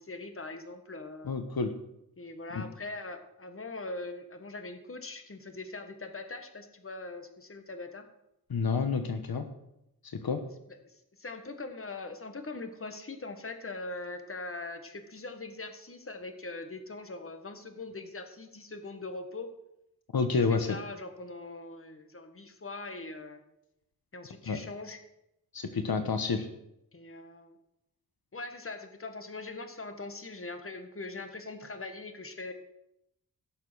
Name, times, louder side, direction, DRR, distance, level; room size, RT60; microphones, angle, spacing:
voice 1, 0.0-1.3 2.2-8.0 10.8-19.5 20.3-23.4 24.1-25.0 26.9-27.6 28.3-32.5, left 3 dB, 35° left, 7 dB, 1.6 m, -41 dB
voice 2, 1.2-1.7 2.5-2.6 8.5-9.5 10.1-10.4 20.1-20.8 24.5-24.6 25.5-26.5, left 4 dB, 75° left, 8 dB, 1.1 m, -29 dB
16.5 x 6.7 x 6.3 m, 0.84 s
wide cardioid pair, 100°, 37 cm